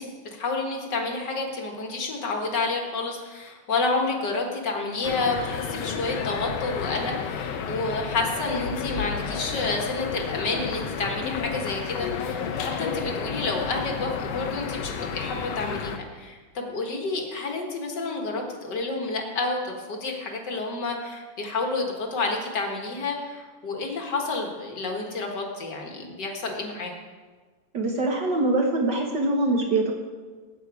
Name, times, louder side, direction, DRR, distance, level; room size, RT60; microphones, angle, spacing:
voice 1, 0.0-26.9, left 3 dB, 45° left, 2 dB, 1.6 m, -29 dB
sound 1, 5.0-16.0, left 6 dB, 70° left, 1.6 m, -32 dB
voice 2, 27.7-29.9, right 2 dB, 60° right, 1 dB, 1.1 m, -23 dB
19.0 x 8.5 x 4.9 m, 1.4 s
omnidirectional pair, 3.9 m